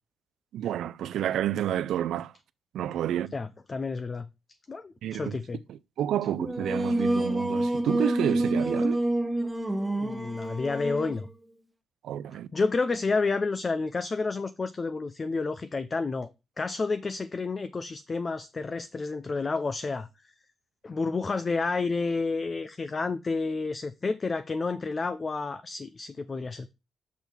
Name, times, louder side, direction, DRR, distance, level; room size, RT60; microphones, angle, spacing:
voice 1, 0.5-2.3 2.7-3.3 5.0-5.4 5.7-9.0 12.0-12.5, right 11 dB, 80° right, 0.4 m, -30 dB
voice 2, 3.3-4.3 4.7-5.6 10.0-11.3 12.5-16.3 16.6-20.1 20.8-26.7, left 4 dB, 30° left, 0.4 m, -30 dB
Singing, 6.4-11.2, right 1 dB, 10° right, 0.8 m, -28 dB
6.3 x 3.5 x 5.9 m
cardioid pair, 120°, 0 cm